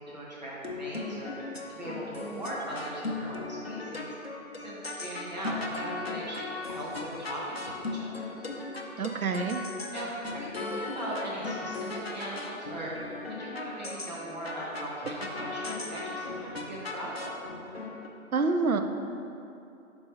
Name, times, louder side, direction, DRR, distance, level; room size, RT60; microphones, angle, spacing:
voice 1, 0.0-6.9 7.2-8.1 9.9-17.3, right 1 dB, 30° right, -7 dB, 1.2 m, -39 dB
sound 1, 0.6-18.1, left 3 dB, 45° left, 0.5 m, -38 dB
voice 2, 9.0-9.6 18.3-18.8, right 4 dB, 80° right, 6 dB, 0.6 m, -27 dB
5.4 x 4.3 x 4.4 m, 2.7 s
figure-of-eight pair, 155°, 42 cm